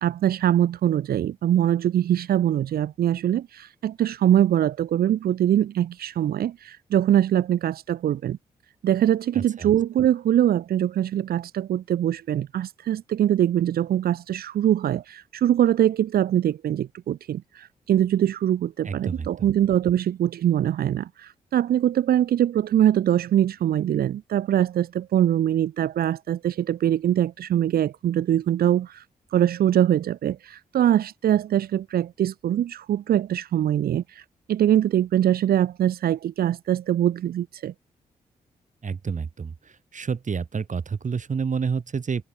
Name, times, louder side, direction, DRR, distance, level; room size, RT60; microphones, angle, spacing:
voice 1, 0.0-8.4 8.8-29.1 29.3-37.7, right 11 dB, 75° right, 1.7 m, -23 dB
voice 2, 9.3-9.7 18.9-19.5 38.8-39.5 39.9-42.2, right 5 dB, 55° right, 7.0 m, -29 dB
supercardioid pair, 50°, 16 cm